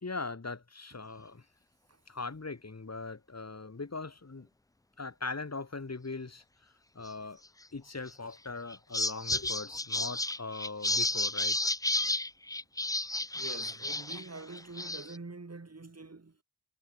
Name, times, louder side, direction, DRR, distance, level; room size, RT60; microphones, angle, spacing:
voice 1, 0.0-1.4 2.1-4.5 5.0-6.4 6.9-7.4 7.7-11.6, left 3 dB, 40° left, 3.9 m, -40 dB
sound 1, 8.1-8.3 8.7-14.3 14.5-15.2, left 2 dB, 10° left, 0.5 m, -32 dB
voice 2, 13.3-16.4, right 3 dB, 40° right, 4.1 m, -45 dB
cardioid pair, 55°, 38 cm